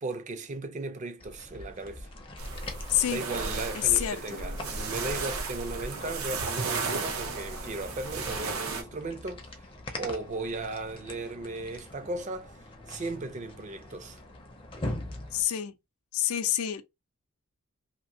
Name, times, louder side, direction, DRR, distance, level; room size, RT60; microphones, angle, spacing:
voice 1, 0.0-2.1 3.1-9.7 9.9-12.5 12.9-14.2, right 2 dB, 35° right, 0.4 m, -36 dB
sound 1, 1.2-15.4, left 1 dB, 25° left, 0.5 m, -43 dB
sound 2, 2.4-8.8, right 4 dB, 90° right, 0.7 m, -34 dB
voice 2, 2.9-3.2 3.7-4.4 15.3-15.7 16.1-16.8, left 11 dB, 80° left, 0.5 m, -27 dB
2.8 x 2.5 x 2.7 m
head